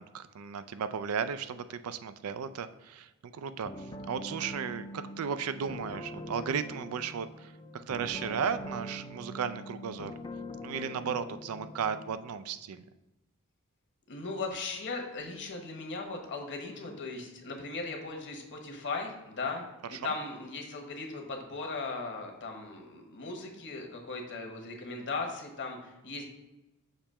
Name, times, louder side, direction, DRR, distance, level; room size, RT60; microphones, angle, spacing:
voice 1, 0.0-10.1 10.6-12.9 19.9-20.1, right 6 dB, 90° right, 12 dB, 0.4 m, -35 dB
sound 1, 3.6-12.1, equal, 20° left, 0.4 m, -43 dB
voice 2, 14.1-19.6 19.9-26.2, left 3 dB, 55° left, 2 dB, 1.2 m, -38 dB
6.6 x 2.9 x 5.5 m, 1.0 s
head